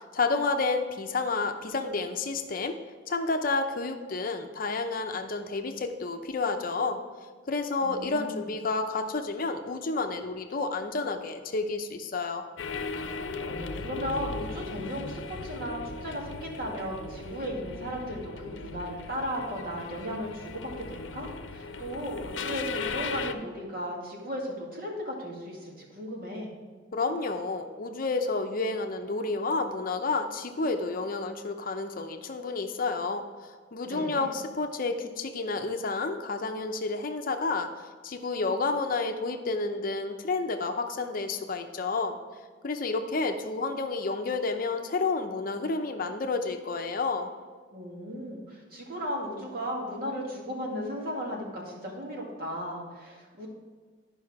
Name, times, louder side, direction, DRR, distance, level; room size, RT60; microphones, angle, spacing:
voice 1, 0.1-2.8 3.1-7.0 7.5-12.5 26.9-37.7 38.0-42.2 42.6-47.3, left 3 dB, 50° left, 6 dB, 0.7 m, -30 dB
voice 2, 7.8-8.5 13.4-26.5 33.8-34.3 47.7-53.5, equal, 50° right, -2 dB, 2.1 m, -36 dB
sound 1, 12.6-23.3, left 4 dB, 90° left, 0.6 m, -37 dB
11.5 x 5.4 x 4.8 m, 1.5 s
head